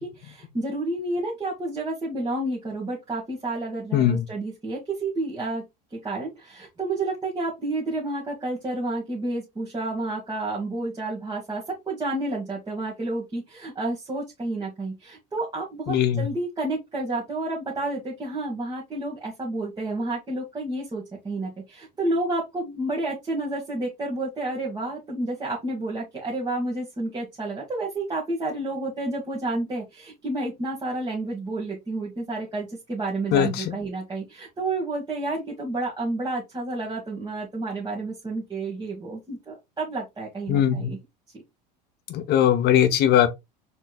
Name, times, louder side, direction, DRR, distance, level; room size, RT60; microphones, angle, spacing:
voice 1, 0.0-5.6 5.9-41.0 41.3-41.4, right 2 dB, 20° right, 1.4 m, -30 dB
voice 2, 3.9-4.2 15.9-16.3 33.3-33.5 40.5-40.9 42.1-43.3, left 10 dB, 50° left, 0.8 m, -20 dB
4.3 x 3.1 x 2.3 m
hypercardioid pair, 85°, 21 cm